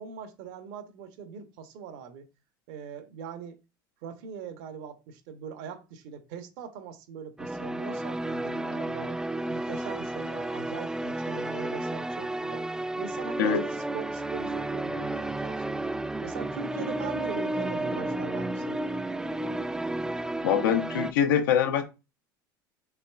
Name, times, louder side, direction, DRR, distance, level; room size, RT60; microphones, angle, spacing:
voice 1, 0.0-2.3 2.7-3.6 4.0-9.2 9.5-12.7 13.0-15.8 16.2-18.9, right 6 dB, 65° right, 0.9 m, -41 dB
sound 1, 7.4-21.1, right 1 dB, 5° right, 0.3 m, -32 dB
voice 2, 20.4-21.8, left 8 dB, 75° left, 0.8 m, -24 dB
5.8 x 3.0 x 2.3 m
hypercardioid pair, 80°, 11 cm